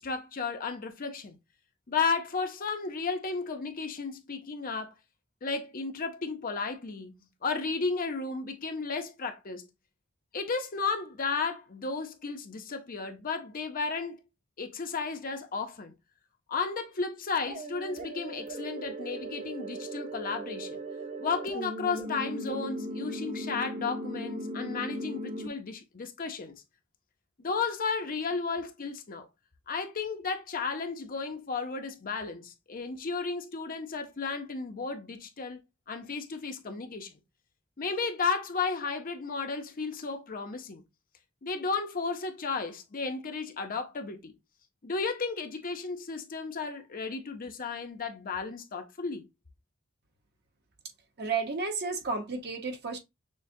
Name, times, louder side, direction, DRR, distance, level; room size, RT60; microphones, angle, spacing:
voice 1, 0.0-1.4 1.9-4.9 5.4-7.1 7.4-9.7 10.3-14.2 14.6-15.9 16.5-20.8 21.2-26.5 27.4-29.3 29.7-35.6 35.9-37.1 37.8-40.8 41.4-44.4 44.8-49.3, left 4 dB, 45° left, 0.7 m, -33 dB
sound 1, 17.5-25.5, right 1 dB, 35° right, 0.6 m, -38 dB
voice 2, 51.2-53.0, right 4 dB, 50° right, 1.0 m, -32 dB
6.4 x 2.2 x 2.7 m
head